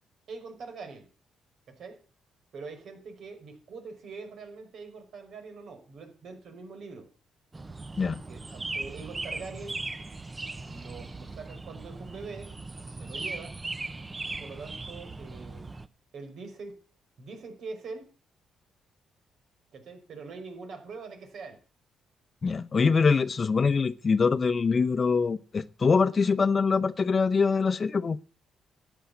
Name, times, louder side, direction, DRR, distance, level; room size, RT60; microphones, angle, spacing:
voice 1, 0.3-1.1 1.7-2.0 2.5-7.1 8.0-9.8 10.7-12.5 12.9-13.6 14.3-15.6 16.1-16.8 17.2-18.1 19.7-21.6, right 4 dB, 65° right, 5.3 m, -43 dB
sound 1, 7.5-15.9, right 3 dB, 20° right, 0.9 m, -38 dB
voice 2, 22.4-28.2, left 5 dB, 35° left, 0.9 m, -24 dB
14.0 x 9.2 x 8.4 m
cardioid pair, 90°, 0 cm